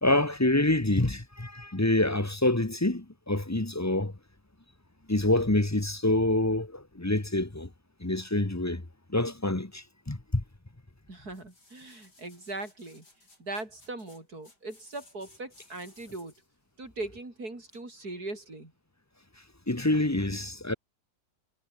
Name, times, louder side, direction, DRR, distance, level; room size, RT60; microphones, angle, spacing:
voice 1, 0.0-4.2 5.1-7.7 8.0-10.4 19.7-20.7, left 1 dB, 10° left, 1.2 m, -27 dB
voice 2, 11.1-13.0 13.4-16.3 16.8-18.7, right 2 dB, 60° right, 6.4 m, -40 dB
sound 1, 11.3-16.5 17.0-17.1, left 2 dB, 75° left, 7.5 m, -59 dB
omnidirectional pair, 1.8 m